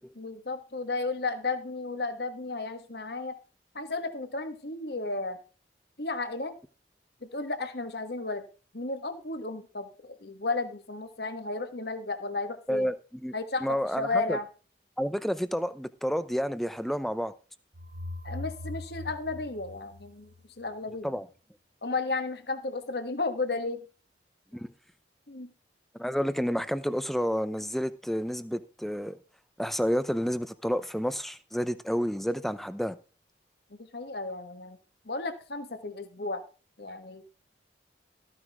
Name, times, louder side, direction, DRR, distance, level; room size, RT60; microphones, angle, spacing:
voice 1, 0.2-3.4 3.7-5.4 6.0-6.5 7.2-8.4 8.7-12.9 13.3-14.5 18.2-20.3 20.6-21.1 21.8-23.8 25.3-25.5 33.8-34.8 35.0-36.4 36.8-37.2, left 3 dB, 60° left, 1.6 m, -33 dB
voice 2, 12.7-13.3 13.6-14.4 15.0-17.3 21.0-21.3 24.5-24.7 26.0-29.2 29.6-33.0, equal, ahead, 0.7 m, -30 dB
sound 1, 17.7-20.6, left 2 dB, 70° right, 1.6 m, -41 dB
14.0 x 10.0 x 3.6 m
head